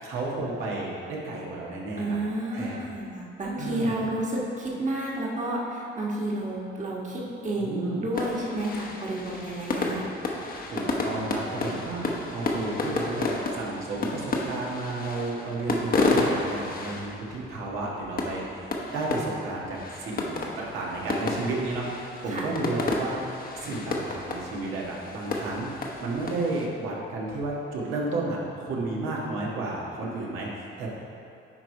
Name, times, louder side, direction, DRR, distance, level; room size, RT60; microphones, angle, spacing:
voice 1, 0.0-2.2 2.5-2.8 3.5-4.0 7.6-8.1 10.6-30.9, right 2 dB, 85° right, -4 dB, 1.5 m, -32 dB
voice 2, 2.0-10.0 22.3-22.5, right 1 dB, 40° right, -4 dB, 1.4 m, -30 dB
sound 1, 8.1-26.7, left 2 dB, 45° left, 0.9 m, -31 dB
9.7 x 3.3 x 4.8 m, 2.7 s
cardioid pair, 90°, 20 cm